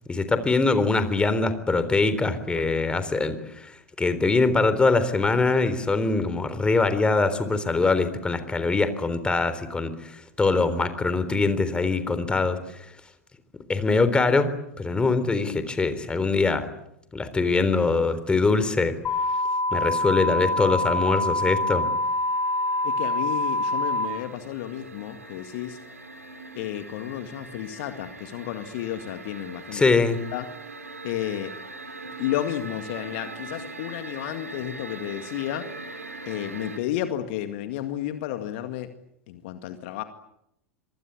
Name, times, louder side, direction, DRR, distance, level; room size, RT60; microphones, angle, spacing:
voice 1, 0.1-12.9 13.7-16.7 17.1-18.9 19.7-21.9 29.7-30.2, left 3 dB, 15° left, 12 dB, 3.7 m, -23 dB
sound 1, 19.0-24.0, left 2 dB, 30° left, 7.2 m, -25 dB
sound 2, 20.1-20.2 20.5-36.8, right 3 dB, 80° right, 4.1 m, -42 dB
voice 2, 22.8-25.8 26.6-29.9 30.3-30.5 31.0-31.5 32.2-35.7 36.3-38.9 39.3-40.0, left 12 dB, 55° left, 8 dB, 2.0 m, -32 dB
25.5 x 25.5 x 8.4 m, 0.79 s
figure-of-eight pair, 85°, 8 cm